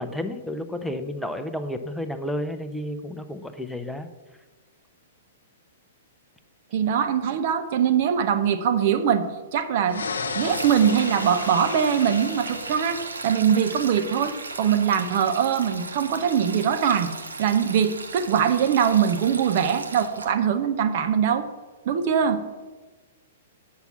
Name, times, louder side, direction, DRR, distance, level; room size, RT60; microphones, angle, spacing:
voice 1, 0.0-4.1, left 1 dB, ahead, 7 dB, 0.7 m, -31 dB
voice 2, 6.7-9.3 9.5-10.1 10.4-17.1 17.4-21.5 21.8-22.4, right 8 dB, 50° right, 8 dB, 0.9 m, -22 dB
sound 1, 9.9-13.8, left 4 dB, 75° left, 0.8 m, -34 dB
Sink (filling or washing), 10.3-20.3, right 3 dB, 80° right, 0.9 m, -37 dB
8.2 x 5.9 x 7.1 m, 1.3 s
figure-of-eight pair, 110°, 0 cm